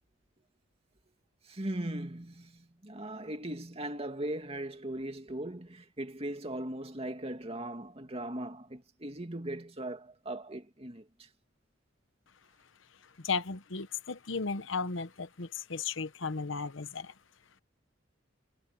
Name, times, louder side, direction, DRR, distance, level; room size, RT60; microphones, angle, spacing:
voice 1, 1.4-11.3, right 1 dB, 30° right, 2.5 m, -39 dB
voice 2, 13.0-17.1, left 4 dB, 70° left, 1.0 m, -35 dB
head